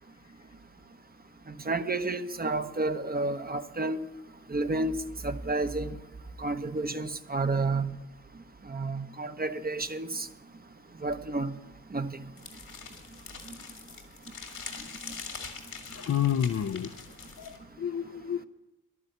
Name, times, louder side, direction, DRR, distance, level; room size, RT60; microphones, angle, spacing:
voice 1, 1.5-4.0 4.5-5.0 5.2-6.0 6.4-8.0 8.6-10.3 11.0-11.6 11.9-12.2 13.5-13.6, right 3 dB, 30° right, 0.9 m, -30 dB
sound 1, 12.4-17.6, left 5 dB, 75° left, 2.1 m, -43 dB
voice 2, 15.9-16.9 17.4-18.4, left 9 dB, 50° left, 0.6 m, -30 dB
11.0 x 9.6 x 8.0 m
supercardioid pair, 45°, 33 cm